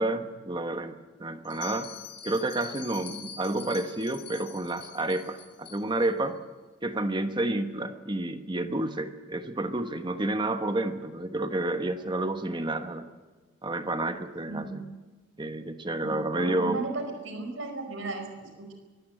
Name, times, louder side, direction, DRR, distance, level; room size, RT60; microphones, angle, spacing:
voice 1, 0.0-1.9 2.2-6.3 6.8-13.1 13.6-14.8 15.4-16.8, right 2 dB, 25° right, 8 dB, 1.2 m, -30 dB
Bell, 1.4-6.1, left 8 dB, 55° left, 3.1 m, -44 dB
voice 2, 14.4-14.9 16.0-18.7, right 3 dB, 70° right, 5 dB, 4.9 m, -36 dB
23.5 x 15.5 x 9.0 m, 1.4 s
head